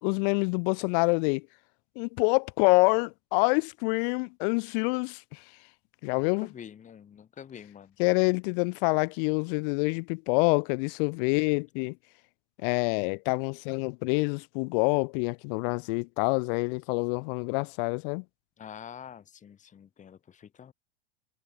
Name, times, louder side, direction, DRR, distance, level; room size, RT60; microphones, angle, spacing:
voice 1, 0.0-1.4 1.9-5.4 6.0-6.5 8.0-12.0 12.6-18.2, left 38 dB, 50° left, 1.3 m, -26 dB
voice 2, 6.4-8.0 18.6-20.7, left 8 dB, 20° left, 2.0 m, -46 dB
hypercardioid pair, 110°, 34 cm